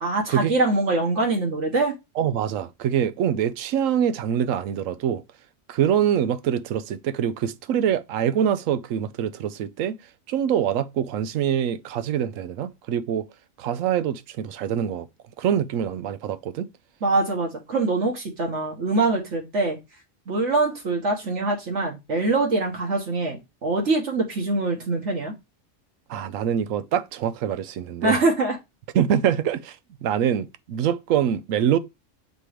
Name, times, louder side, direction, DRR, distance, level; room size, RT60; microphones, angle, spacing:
voice 1, 0.0-1.9 17.0-19.8 20.3-25.3 28.0-28.6, right 3 dB, 65° right, 1.6 m, -24 dB
voice 2, 2.2-5.2 5.7-10.0 10.3-13.3 13.6-15.1 15.4-16.7 26.1-28.2 28.9-31.8, right 9 dB, 80° right, 1.0 m, -24 dB
6.8 x 3.0 x 4.9 m
omnidirectional pair, 1.3 m